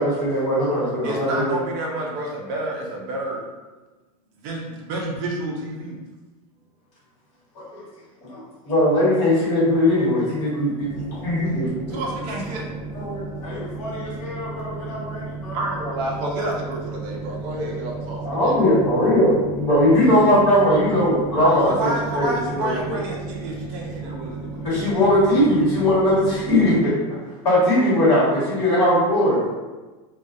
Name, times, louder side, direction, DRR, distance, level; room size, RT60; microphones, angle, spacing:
voice 1, 0.0-1.5 7.5-7.8 8.2-8.3 8.6-12.0 12.9-13.2 18.2-22.9 24.6-26.9 27.4-29.4, left 1 dB, 45° left, -8 dB, 1.5 m, -19 dB
voice 2, 1.0-3.5 4.4-6.0 11.9-12.7 15.5-18.5 21.7-24.7, right 1 dB, 45° right, -2 dB, 0.5 m, -29 dB
voice 3, 7.7-8.6 11.5-11.7 13.4-15.6 17.7-17.8 24.4-24.5, left 1 dB, 80° left, -5 dB, 0.9 m, -37 dB
sound 1, 10.8-26.8, right 3 dB, 10° left, 0.6 m, -34 dB
2.3 x 2.2 x 2.6 m, 1.2 s
supercardioid pair, 165°, 18 cm